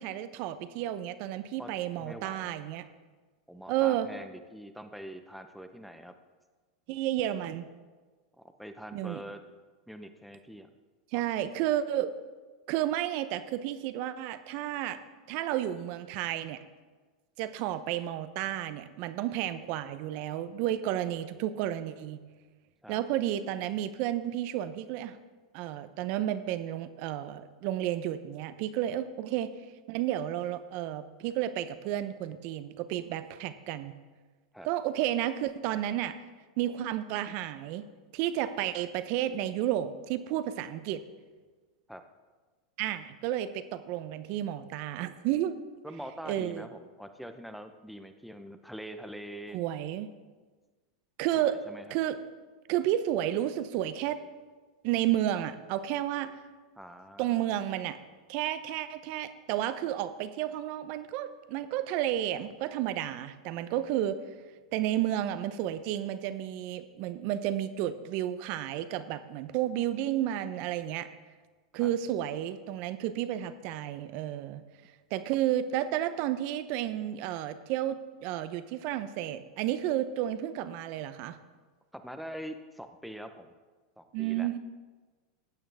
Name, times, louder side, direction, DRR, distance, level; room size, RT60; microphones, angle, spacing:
voice 1, 0.0-2.8 3.7-4.1 6.9-7.6 8.9-9.2 11.1-12.1 12.7-15.0 15.3-16.6 17.4-22.2 22.9-25.2 25.5-29.5 29.9-33.9 34.6-36.1 36.6-37.9 38.1-41.0 42.8-45.6 46.2-46.6 49.5-50.1 51.2-51.6 51.9-52.2 52.7-54.2 54.8-56.4 57.2-58.0 58.3-64.2 64.7-71.1 71.7-74.6 75.1-81.4 84.1-84.6, right 12 dB, 55° right, 12 dB, 0.7 m, -31 dB
voice 2, 2.0-2.5 3.5-6.1 8.4-9.4 9.9-10.7 11.1-11.2 22.8-23.0 34.5-34.7 41.9-42.0 45.8-49.6 51.3-52.0 56.8-57.5 71.7-71.9 81.9-83.5 84.0-84.5, equal, ahead, 7 dB, 0.9 m, -44 dB
15.0 x 8.8 x 3.5 m, 1.3 s
hypercardioid pair, 110°, 3 cm